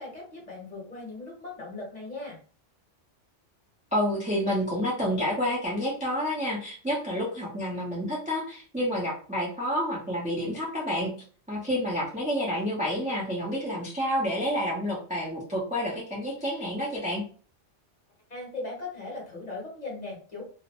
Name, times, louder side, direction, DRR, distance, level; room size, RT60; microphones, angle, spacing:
voice 1, 0.0-2.4 18.3-20.4, left 3 dB, 40° left, -3 dB, 1.0 m, -38 dB
voice 2, 3.9-11.1 11.5-17.2, equal, 10° right, -4 dB, 0.4 m, -29 dB
2.4 x 2.1 x 2.9 m, 0.42 s
omnidirectional pair, 1.2 m